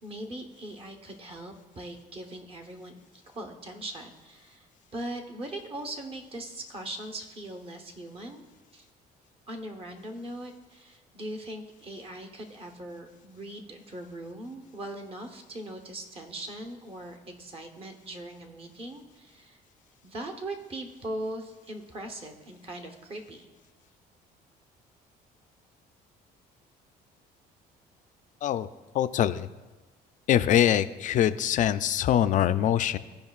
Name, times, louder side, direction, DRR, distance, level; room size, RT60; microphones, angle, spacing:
voice 1, 0.0-3.0 3.3-4.7 4.9-8.4 8.7-8.9 9.5-19.6 20.0-23.5, right 1 dB, 35° right, 4 dB, 1.0 m, -40 dB
voice 2, 28.9-29.5 30.3-33.0, left 11 dB, 50° left, 13 dB, 0.4 m, -23 dB
15.5 x 5.1 x 2.4 m, 1.2 s
cardioid pair, 110°, 17 cm